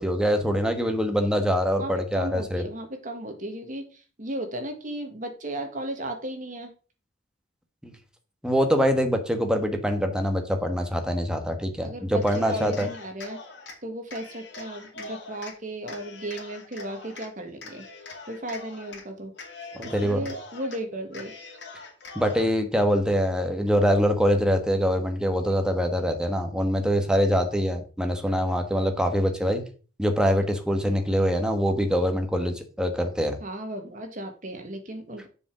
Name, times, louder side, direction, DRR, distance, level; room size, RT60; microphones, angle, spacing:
voice 1, 0.0-2.6 7.8-7.9 8.4-12.9 19.7-20.3 22.1-29.6 30.0-33.4, equal, 5° right, 5 dB, 1.3 m, -24 dB
voice 2, 1.8-6.7 11.8-13.4 13.8-17.8 18.3-19.3 19.8-21.3 33.4-35.3, right 1 dB, 45° right, 5 dB, 1.7 m, -35 dB
Cheering, 12.2-13.8 14.1-15.5 15.9-17.3 17.6-19.0 19.3-20.8 21.1-22.5, left 3 dB, 70° left, 2.4 m, -43 dB
6.9 x 5.1 x 6.1 m, 0.37 s
head